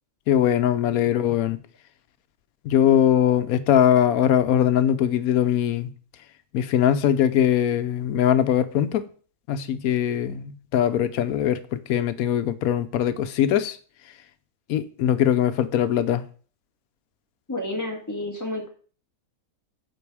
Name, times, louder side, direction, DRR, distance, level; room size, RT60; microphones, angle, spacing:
voice 1, 0.3-1.6 2.6-5.9 6.5-9.0 9.5-13.8 14.7-16.2, left 10 dB, 85° left, 1.1 m, -21 dB
voice 2, 17.5-18.7, left 1 dB, 15° left, 1.5 m, -30 dB
8.5 x 4.3 x 4.7 m
omnidirectional pair, 1.5 m